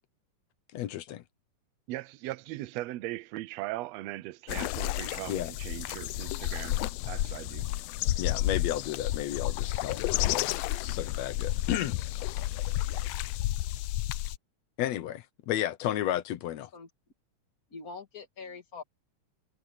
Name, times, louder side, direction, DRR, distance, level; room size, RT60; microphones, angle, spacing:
voice 1, 0.7-1.2 5.3-5.5 8.2-12.0 14.8-16.7, left 12 dB, 70° left, 1.9 m, -33 dB
voice 2, 1.9-6.8 7.0-7.7, right 17 dB, 75° right, 1.6 m, -39 dB
sound 1, 4.5-14.4, left 15 dB, 90° left, 1.5 m, -31 dB
voice 3, 17.7-18.8, left 4 dB, 30° left, 2.0 m, -43 dB
omnidirectional pair, 3.6 m